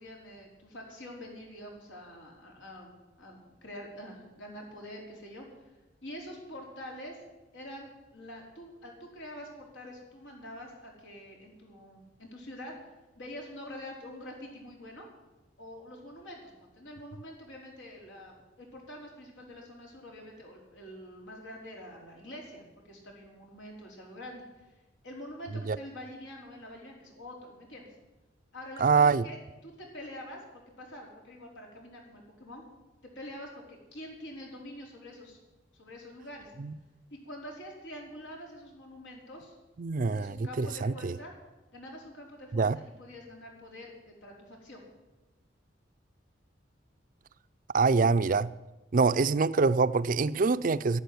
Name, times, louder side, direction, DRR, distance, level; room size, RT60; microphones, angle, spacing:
voice 1, 0.0-5.5 6.0-7.3 7.5-12.7 13.2-15.1 15.6-24.4 25.0-27.8 28.5-29.4 29.6-32.6 33.1-35.4 35.7-36.5 37.1-39.5 40.0-41.3 41.7-44.8, left 1 dB, 85° left, 4.6 m, -46 dB
voice 2, 28.8-29.2 36.6-36.7 39.8-41.2 42.5-42.8 47.7-48.5 48.9-51.0, right 4 dB, 45° right, 0.5 m, -25 dB
11.5 x 11.5 x 9.5 m
head